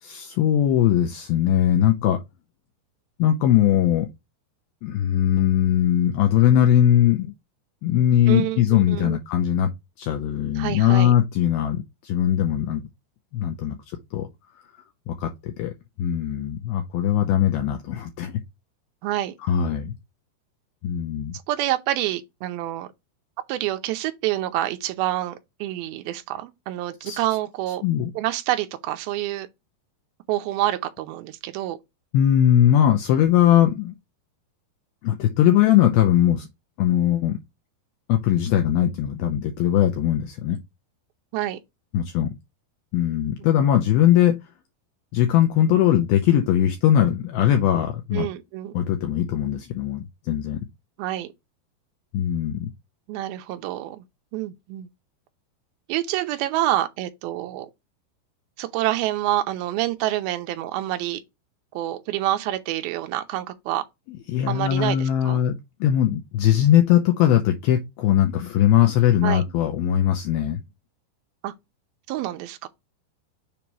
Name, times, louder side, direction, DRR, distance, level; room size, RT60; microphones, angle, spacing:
voice 1, 0.0-2.2 3.2-4.1 4.8-7.3 7.8-9.7 10.0-12.8 13.3-13.8 14.1-14.3 15.1-18.4 19.4-19.9 20.8-21.4 27.0-27.2 27.8-28.1 32.1-34.0 35.0-36.5 36.8-37.4 38.1-40.6 41.9-42.3 42.9-44.4 45.1-48.3 48.7-50.6 52.1-52.7 64.1-70.6, left 11 dB, 80° left, 2.3 m, -20 dB
voice 2, 8.3-9.2 10.6-11.1 19.0-19.4 21.5-22.9 23.5-27.8 28.2-29.5 30.3-31.8 41.3-41.6 48.1-48.7 51.0-51.3 53.1-54.0 54.3-54.9 55.9-57.7 58.6-61.2 61.7-63.8 64.5-65.4 69.2-69.4 71.4-71.5 72.1-72.7, right 14 dB, 80° right, 2.2 m, -27 dB
7.0 x 2.9 x 4.7 m
omnidirectional pair, 5.0 m